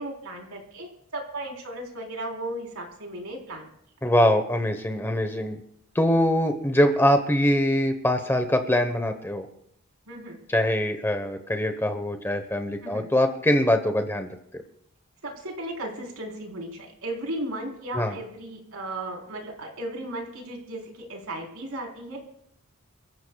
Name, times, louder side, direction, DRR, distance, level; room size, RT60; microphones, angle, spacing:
voice 1, 0.0-3.7 10.1-10.4 12.8-13.1 15.2-22.2, right 1 dB, 85° right, 0 dB, 4.1 m, -35 dB
voice 2, 4.0-5.6 5.9-9.5 10.5-14.3 14.5-14.6 17.9-18.1, left 1 dB, 10° left, 7 dB, 1.0 m, -23 dB
27.5 x 14.5 x 2.4 m, 0.72 s
head